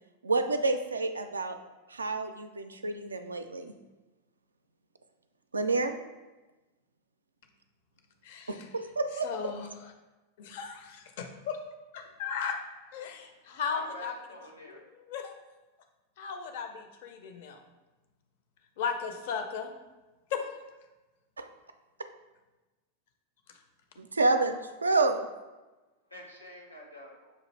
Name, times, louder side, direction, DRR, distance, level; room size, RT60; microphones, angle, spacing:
voice 1, 0.2-1.6 1.9-3.7 5.5-5.9 8.5-9.3 21.4-21.5 24.0-25.2, right 3 dB, 75° right, 8 dB, 0.3 m, -29 dB
voice 2, 8.2-8.7 9.2-9.9 10.4-11.6 11.9-12.6 12.9-14.1 14.7-15.3 16.2-17.6 18.8-19.7 20.3-20.4, left 6 dB, 50° left, 5 dB, 0.5 m, -36 dB
voice 3, 13.4-14.8 26.1-27.3, equal, 85° left, -1 dB, 0.9 m, -47 dB
6.3 x 2.5 x 3.1 m, 1.1 s
figure-of-eight pair, 90°, 0 cm